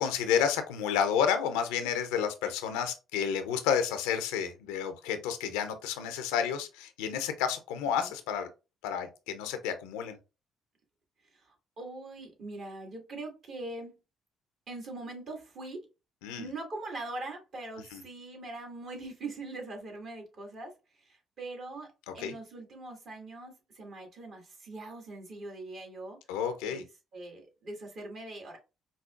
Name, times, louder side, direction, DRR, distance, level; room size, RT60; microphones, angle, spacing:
voice 1, 0.0-8.5 8.8-10.2 16.2-16.5 17.9-18.0 22.1-22.3 26.3-26.8, left 8 dB, 85° left, 9 dB, 0.5 m, -30 dB
voice 2, 11.3-14.0 14.7-15.8 16.4-26.2 26.6-26.8 27.1-28.6, right 2 dB, 60° right, 2 dB, 1.6 m, -42 dB
5.1 x 2.0 x 2.4 m, 0.28 s
hypercardioid pair, 55°, 0 cm